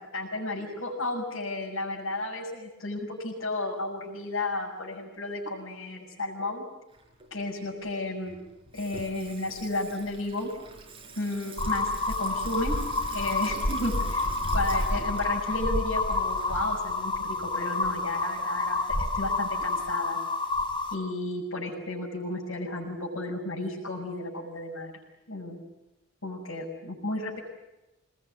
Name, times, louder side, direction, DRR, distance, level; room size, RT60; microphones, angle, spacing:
voice 1, 0.1-6.7 7.3-8.4 8.7-10.5 11.1-12.7 13.1-20.2 20.9-24.9 25.3-25.6 26.2-27.4, left 2 dB, 80° left, -3 dB, 6.2 m, -33 dB
Water tap faucet / Sink (filling or washing), 6.9-18.6, right 3 dB, 25° right, 6.4 m, -47 dB
sound 1, 11.6-20.9, left 2 dB, 25° left, 3.5 m, -29 dB
27.5 x 20.0 x 9.4 m, 1.0 s
head